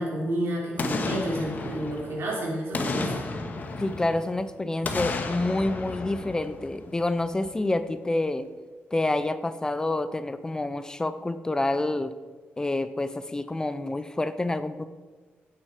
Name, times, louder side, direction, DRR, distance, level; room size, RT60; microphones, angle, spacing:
voice 1, 0.0-3.2, right 1 dB, 75° right, -4 dB, 5.2 m, -30 dB
Boom, 0.8-2.3 2.7-4.4 4.8-7.1 7.4-7.5, left 3 dB, 45° left, 1.6 m, -32 dB
voice 2, 3.8-8.5 8.9-12.1 12.6-14.8, left 2 dB, 15° left, 12 dB, 0.6 m, -28 dB
15.5 x 9.8 x 4.9 m, 1.4 s
wide cardioid pair, 130°, 4 cm